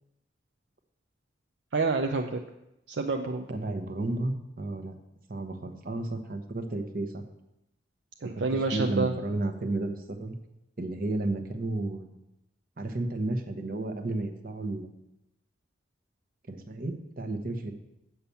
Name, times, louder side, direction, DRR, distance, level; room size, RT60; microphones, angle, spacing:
voice 1, 1.7-2.4 2.9-3.5 8.2-9.1, right 3 dB, 70° right, 4 dB, 0.6 m, -28 dB
voice 2, 3.5-5.0 5.3-7.2 8.2-10.3 10.8-12.1 12.8-14.9 16.5-17.7, right 2 dB, 50° right, 6 dB, 1.0 m, -32 dB
8.2 x 5.9 x 7.0 m, 0.88 s
head